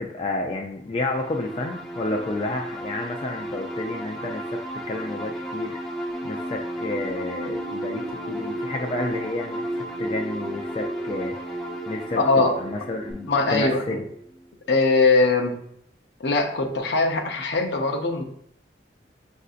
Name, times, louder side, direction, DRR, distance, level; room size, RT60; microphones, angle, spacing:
voice 1, 0.0-4.6 4.9-5.8 6.2-11.4 11.9-14.0, left 2 dB, 30° left, 1 dB, 0.3 m, -30 dB
sound 1, 1.0-14.5, right 1 dB, ahead, 0.7 m, -34 dB
sound 2, 6.1-13.1, right 1 dB, 85° right, 0.9 m, -39 dB
voice 2, 12.1-12.6 13.3-14.0 14.7-15.6 16.2-18.2, left 3 dB, 65° left, 4 dB, 0.6 m, -21 dB
6.4 x 2.6 x 2.4 m, 0.70 s
head